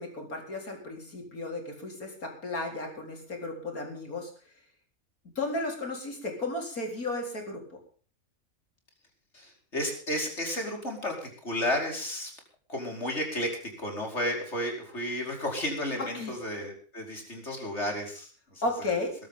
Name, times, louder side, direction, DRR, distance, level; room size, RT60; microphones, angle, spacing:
voice 1, 0.0-4.3 5.4-7.6 16.0-16.3 18.6-19.1, left 2 dB, 75° left, 2 dB, 4.7 m, -34 dB
voice 2, 9.3-12.3 12.7-18.9, left 1 dB, 50° left, 1 dB, 5.4 m, -33 dB
22.0 x 12.5 x 3.9 m, 0.42 s
omnidirectional pair, 1.5 m